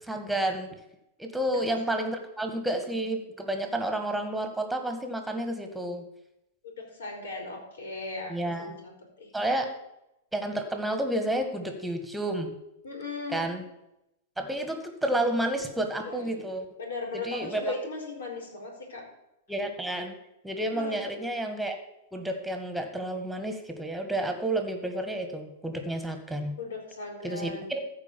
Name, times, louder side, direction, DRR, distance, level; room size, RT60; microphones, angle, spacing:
voice 1, 0.1-0.7 1.2-6.1 8.3-8.8 9.3-9.7 10.3-12.5 13.3-13.6 14.4-16.6 17.1-17.7 19.5-20.2 20.4-21.8 22.1-26.6 27.2-27.8, right 1 dB, 5° right, 6 dB, 1.9 m, -30 dB
voice 2, 6.8-8.7 9.2-9.3 12.8-13.4 16.0-16.2 16.8-19.0 20.7-21.1 26.6-27.7, left 3 dB, 75° left, 1 dB, 4.3 m, -37 dB
14.0 x 4.9 x 7.1 m, 0.86 s
hypercardioid pair, 105°, 0 cm